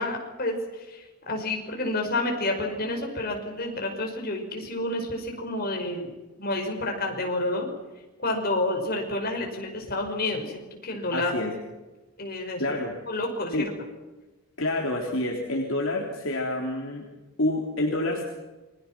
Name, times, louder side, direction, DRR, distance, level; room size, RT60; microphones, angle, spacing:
voice 1, 0.0-6.1 6.4-7.7 8.2-11.5 12.2-12.8 13.1-13.6, left 2 dB, 45° left, 2 dB, 5.7 m, -29 dB
voice 2, 11.1-11.5 12.6-12.9 13.5-13.8 14.6-17.0 17.4-18.2, left 1 dB, 60° left, 0 dB, 3.4 m, -28 dB
29.0 x 22.5 x 6.1 m, 1.1 s
head